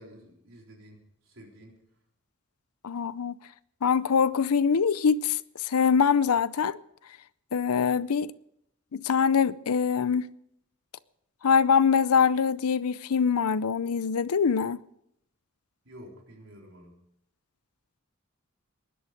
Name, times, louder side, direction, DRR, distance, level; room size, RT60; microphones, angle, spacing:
voice 1, 0.0-1.8 15.8-17.0, equal, 65° right, 4.0 m, -50 dB
voice 2, 2.8-3.4 3.8-6.8 7.5-8.3 8.9-10.3 11.4-14.8, left 6 dB, 90° left, 0.5 m, -24 dB
20.5 x 11.0 x 5.1 m
head